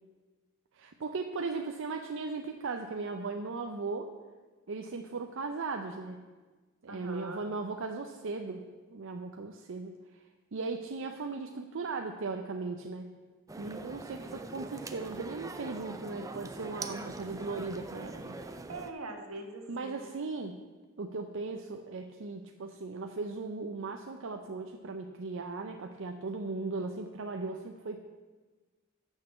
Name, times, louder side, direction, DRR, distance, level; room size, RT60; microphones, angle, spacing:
voice 1, 0.7-4.1 4.7-6.2 6.8-9.9 10.5-13.1 13.6-18.4 19.7-20.6 21.0-28.1, right 3 dB, 65° right, 4 dB, 0.6 m, -37 dB
voice 2, 6.9-7.5 18.7-20.1, right 2 dB, 85° right, 4 dB, 1.4 m, -42 dB
sound 1, 13.5-18.9, right 2 dB, 15° right, 0.5 m, -43 dB
9.6 x 6.5 x 6.8 m, 1.3 s
head